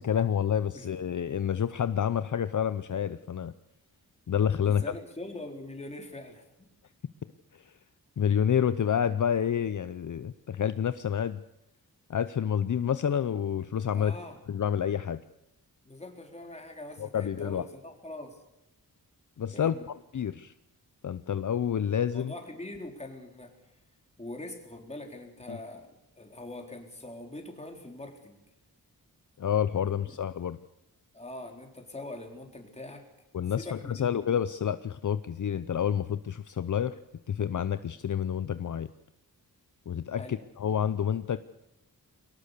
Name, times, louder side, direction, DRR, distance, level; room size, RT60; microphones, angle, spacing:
voice 1, 0.0-3.5 4.3-4.8 7.5-7.7 8.2-11.4 12.1-14.1 14.5-15.2 17.0-17.6 19.4-19.8 20.1-20.5 21.0-22.3 25.5-25.6 29.4-30.6 33.3-37.0 37.3-38.9 39.9-41.4, left 8 dB, 55° left, 13 dB, 0.7 m, -28 dB
voice 2, 4.6-6.7 13.9-14.4 15.8-18.4 19.5-19.9 22.1-23.5 24.2-25.9 26.2-28.4 29.9-30.2 31.1-33.1 33.5-34.2 40.2-40.4, left 2 dB, 20° left, 3 dB, 4.1 m, -43 dB
22.5 x 18.5 x 6.7 m, 0.87 s
wide cardioid pair, 105°, 36 cm